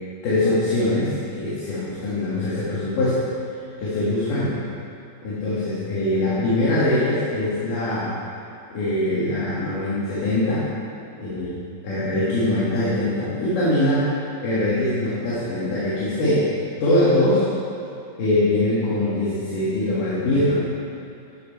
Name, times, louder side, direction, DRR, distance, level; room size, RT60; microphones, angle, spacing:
voice 1, 0.2-3.2 3.8-4.6 5.2-8.1 8.7-10.7 11.1-11.5 11.8-14.1 14.4-16.5 16.8-17.4 18.2-20.6, left 1 dB, 65° left, -10 dB, 2.7 m, -22 dB
10.5 x 5.3 x 4.4 m, 2.6 s
omnidirectional pair, 4.6 m